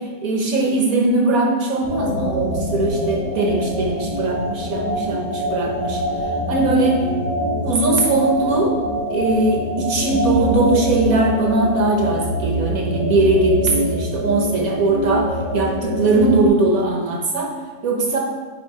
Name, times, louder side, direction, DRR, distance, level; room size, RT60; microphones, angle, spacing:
voice 1, 0.2-6.0 6.5-7.0 7.6-8.8 9.1-17.5 17.8-18.2, right 2 dB, 55° right, 0 dB, 1.1 m, -20 dB
sound 1, 1.8-16.5, equal, 20° right, 1.1 m, -25 dB
9.4 x 3.7 x 4.7 m, 1.4 s
omnidirectional pair, 2.1 m